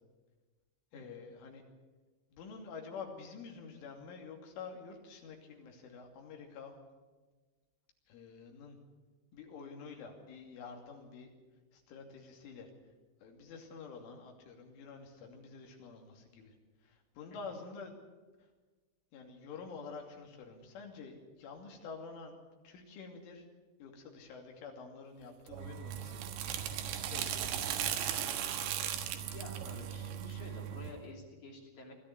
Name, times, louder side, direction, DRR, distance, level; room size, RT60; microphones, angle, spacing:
voice 1, 0.9-1.6 2.3-6.8 8.1-8.8 9.3-11.3 11.7-12.7 13.2-16.5 16.8-18.0 19.1-22.4 22.6-23.5 23.8-26.2 27.1-27.9, left 5 dB, 75° left, 2 dB, 5.2 m, -48 dB
sound 1, 25.5-31.0, right 10 dB, 75° right, 3.9 m, -37 dB
voice 2, 29.3-31.9, left 2 dB, 45° left, 1 dB, 3.8 m, -50 dB
21.5 x 14.0 x 9.7 m, 1.3 s
omnidirectional pair, 5.8 m